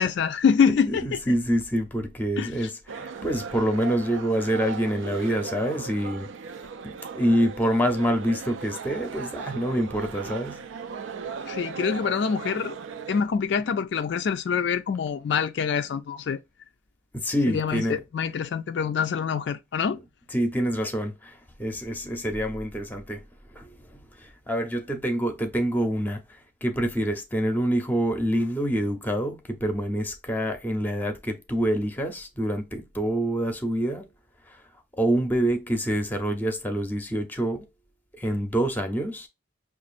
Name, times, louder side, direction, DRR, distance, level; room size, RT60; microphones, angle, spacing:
voice 1, 0.0-1.2 2.4-2.7 11.5-12.8 13.1-16.4 17.5-20.0, left 6 dB, 60° left, 0.3 m, -25 dB
voice 2, 0.9-6.3 6.8-10.6 17.1-18.0 20.3-23.2 23.5-23.7 24.2-26.2 26.6-34.1 35.0-37.6 38.1-39.3, equal, 10° left, 0.6 m, -26 dB
sound 1, 2.9-13.2, right 5 dB, 75° right, 0.4 m, -37 dB
5.9 x 2.4 x 2.4 m
head